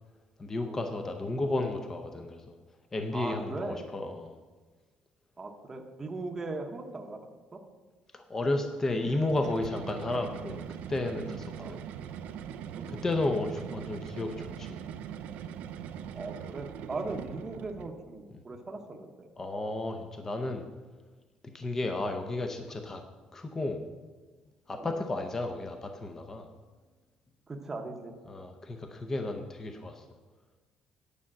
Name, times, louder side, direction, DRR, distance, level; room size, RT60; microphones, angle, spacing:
voice 1, 0.4-2.6 2.9-4.4 8.1-11.8 12.9-14.9 19.4-20.6 21.5-23.0 23.3-23.8 24.7-26.5 28.3-30.1, left 2 dB, 15° left, 6 dB, 0.6 m, -33 dB
voice 2, 3.1-3.8 5.4-7.2 7.5-7.6 11.6-11.8 12.7-13.0 16.1-19.3 24.8-24.9 27.5-28.1, right 3 dB, 15° right, 3 dB, 0.9 m, -39 dB
sound 1, 8.9-18.0, right 9 dB, 75° right, 0.5 m, -41 dB
9.8 x 5.6 x 7.5 m, 1.3 s
cardioid pair, 175°, 3 cm